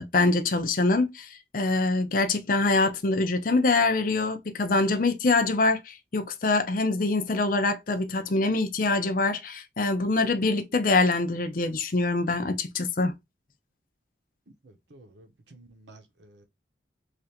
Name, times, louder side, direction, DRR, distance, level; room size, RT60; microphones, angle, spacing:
voice 1, 0.0-13.2, left 3 dB, 50° left, 0.6 m, -24 dB
voice 2, 14.6-16.5, right 2 dB, 75° right, 0.9 m, -53 dB
3.3 x 2.5 x 4.1 m
head